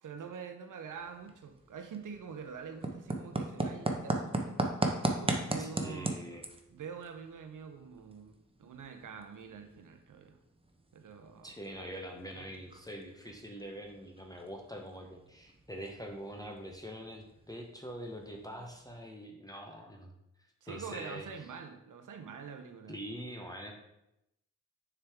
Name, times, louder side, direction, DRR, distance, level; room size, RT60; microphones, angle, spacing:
voice 1, 0.0-6.1 6.7-10.4 10.9-11.6 12.3-12.5 20.6-23.0, right 6 dB, 75° right, 6 dB, 0.8 m, -46 dB
sound 1, 0.9-19.0, right 2 dB, 15° right, 0.9 m, -40 dB
voice 2, 5.6-6.5 11.4-20.1 20.7-21.5 22.9-23.8, equal, 10° left, 1 dB, 0.9 m, -44 dB
6.7 x 4.7 x 3.5 m, 0.85 s
cardioid pair, 50°, 31 cm